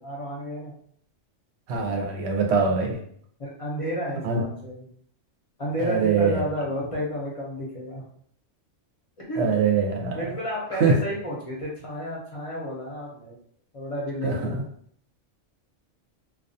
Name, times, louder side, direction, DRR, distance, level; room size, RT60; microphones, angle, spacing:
voice 1, 0.0-0.7 3.4-4.9 5.6-8.0 9.3-9.5 10.1-13.4 13.7-14.6, equal, 35° left, -4 dB, 0.5 m, -31 dB
voice 2, 1.7-3.0 4.2-4.4 5.8-6.4 9.4-10.2 10.8-10.9 14.2-14.3, right 5 dB, 65° right, 1 dB, 0.8 m, -23 dB
2.3 x 2.3 x 2.6 m, 0.62 s
omnidirectional pair, 1.3 m